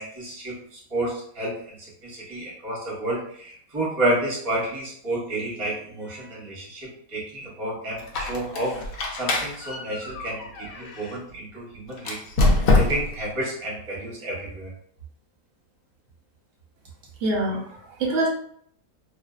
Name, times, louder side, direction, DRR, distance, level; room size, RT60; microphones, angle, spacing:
voice 1, 0.0-14.7, right 1 dB, 30° right, -5 dB, 0.6 m, -30 dB
Squeak, 8.0-11.2 12.0-13.3, left 2 dB, 70° left, 0.9 m, -24 dB
voice 2, 17.2-18.3, right 2 dB, 55° right, -2 dB, 0.8 m, -25 dB
2.6 x 2.2 x 2.3 m, 0.64 s
omnidirectional pair, 1.8 m